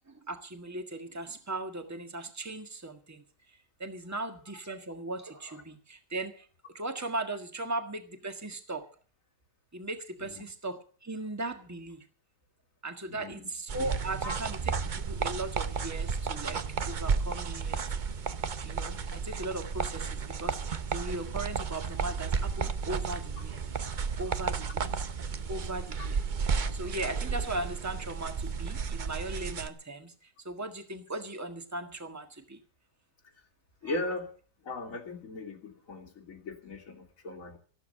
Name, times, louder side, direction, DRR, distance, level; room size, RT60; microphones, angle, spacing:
voice 1, 0.1-3.2 3.8-6.5 6.7-8.9 9.7-12.0 12.8-17.8 18.6-23.6 24.2-24.9 25.5-26.2 26.7-32.6 33.8-34.0, right 2 dB, 10° right, 7 dB, 1.5 m, -38 dB
voice 2, 13.1-13.4 14.2-14.4 24.8-24.9 33.8-34.3 34.6-37.6, left 2 dB, 50° left, 4 dB, 2.6 m, -38 dB
sound 1, 13.7-29.7, right 5 dB, 50° right, 0.5 m, -33 dB
14.5 x 12.0 x 6.5 m, 0.41 s
omnidirectional pair, 1.9 m